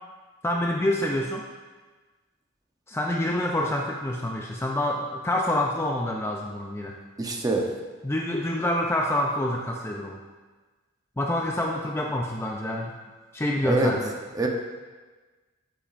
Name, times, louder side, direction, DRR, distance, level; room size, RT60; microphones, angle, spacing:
voice 1, 0.4-1.5 2.9-7.0 8.0-10.2 11.2-13.0 13.3-14.1, left 1 dB, 10° left, 0 dB, 0.4 m, -27 dB
voice 2, 7.2-7.7 13.6-13.9 14.3-14.5, right 2 dB, 20° right, 1 dB, 0.8 m, -24 dB
9.0 x 8.2 x 2.5 m, 1.3 s
head